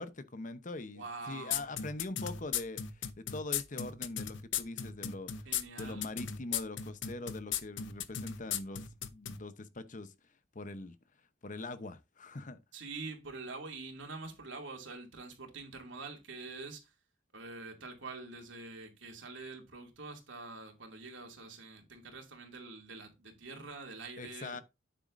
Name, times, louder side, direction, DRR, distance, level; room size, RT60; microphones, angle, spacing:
voice 1, 0.0-5.5 5.8-10.1 10.5-11.0 11.4-12.6 24.2-24.6, left 2 dB, 40° left, 0.8 m, -43 dB
voice 2, 0.9-1.7 5.4-6.1 12.7-16.9 17.3-24.6, right 3 dB, 80° right, 2.6 m, -45 dB
sound 1, 1.5-9.4, left 9 dB, 70° left, 0.8 m, -35 dB
9.3 x 7.9 x 2.6 m
head